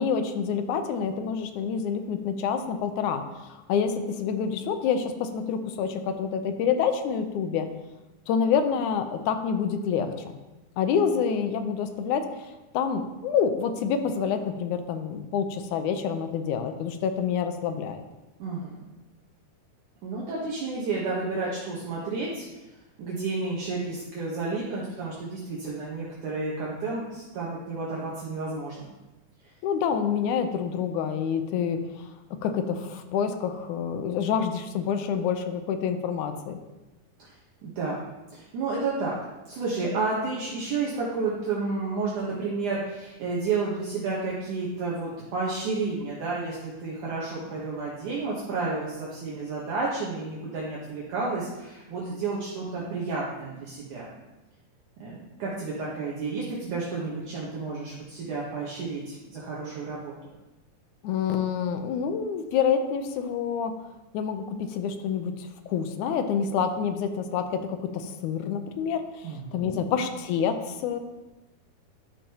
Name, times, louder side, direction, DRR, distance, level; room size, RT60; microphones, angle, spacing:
voice 1, 0.0-7.7 8.3-10.1 10.8-18.0 29.6-36.6 61.0-63.8 64.1-71.0, left 7 dB, 75° left, 7 dB, 1.8 m, -27 dB
voice 2, 18.4-18.8 20.0-22.5 23.0-28.8 37.6-38.0 38.3-39.2 39.5-54.1 55.0-60.1 69.2-69.8, right 3 dB, 65° right, -5 dB, 2.5 m, -31 dB
13.0 x 6.8 x 2.9 m, 1.1 s
omnidirectional pair, 4.3 m